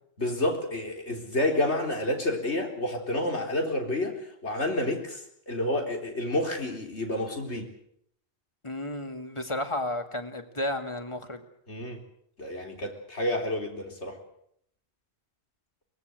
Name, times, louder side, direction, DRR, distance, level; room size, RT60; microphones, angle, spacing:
voice 1, 0.2-4.1 4.4-5.2 5.5-7.7 11.7-12.0 12.4-14.2, left 1 dB, 90° left, 3 dB, 4.2 m, -29 dB
voice 2, 8.6-11.4, left 1 dB, 25° left, 6 dB, 2.3 m, -32 dB
23.5 x 19.5 x 7.9 m, 0.71 s
omnidirectional pair, 1.1 m